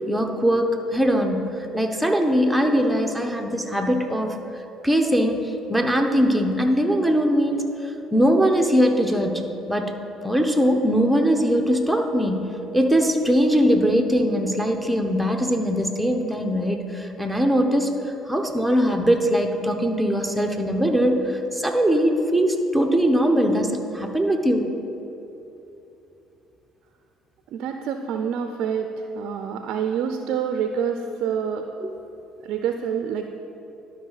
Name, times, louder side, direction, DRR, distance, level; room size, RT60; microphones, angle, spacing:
voice 1, 0.0-4.3 4.8-9.4 9.7-9.9 10.2-17.9 18.3-24.6 31.8-31.9, equal, ahead, 2 dB, 0.9 m, -21 dB
voice 2, 27.5-31.7 32.4-33.3, right 7 dB, 70° right, 6 dB, 0.4 m, -27 dB
12.0 x 5.3 x 4.0 m, 2.9 s
supercardioid pair, 70°, 0 cm